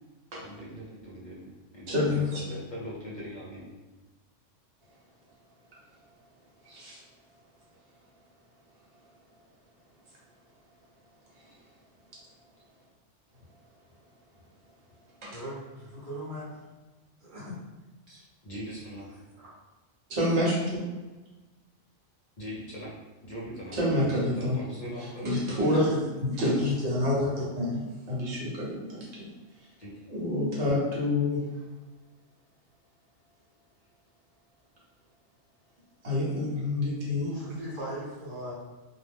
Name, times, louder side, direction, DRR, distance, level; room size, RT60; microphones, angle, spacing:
voice 1, 0.4-3.7 18.4-19.1 22.4-22.9 23.2-25.6 29.8-30.0, equal, 45° left, -6 dB, 0.7 m, -41 dB
voice 2, 1.9-2.4 6.6-7.0 15.2-15.3 20.1-20.8 23.8-24.6 25.2-27.8 28.1-29.3 30.1-31.4 36.0-37.3, left 1 dB, 65° right, -5 dB, 1.2 m, -27 dB
voice 3, 15.3-16.6 17.2-17.6 18.1-18.2 19.4-19.5 37.2-38.5, equal, 45° right, -7 dB, 1.0 m, -39 dB
2.5 x 2.0 x 3.3 m, 1.2 s
omnidirectional pair, 1.3 m